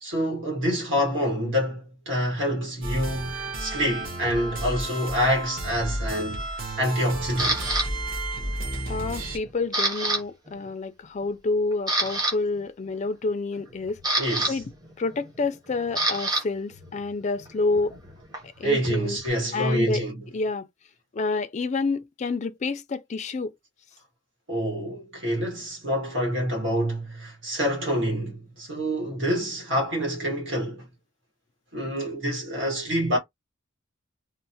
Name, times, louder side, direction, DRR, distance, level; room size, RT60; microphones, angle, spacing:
voice 1, 0.0-6.4 6.8-7.7 14.2-14.6 18.6-20.3 24.5-30.9 31.7-33.2, equal, 60° right, 1.6 m, -27 dB
sound 1, 2.8-9.4, right 1 dB, 40° right, 0.9 m, -32 dB
Camera, 7.4-7.9 8.5-8.8 9.1-10.2 10.5-10.7 11.2-11.3 11.7-12.3 13.5-16.4 16.7-19.3, right 2 dB, 20° right, 0.9 m, -28 dB
voice 2, 8.9-14.6 15.0-18.0 18.4-19.2 19.5-20.0 20.3-20.7 21.1-23.5, left 3 dB, 35° left, 0.3 m, -28 dB
3.0 x 2.0 x 2.8 m
head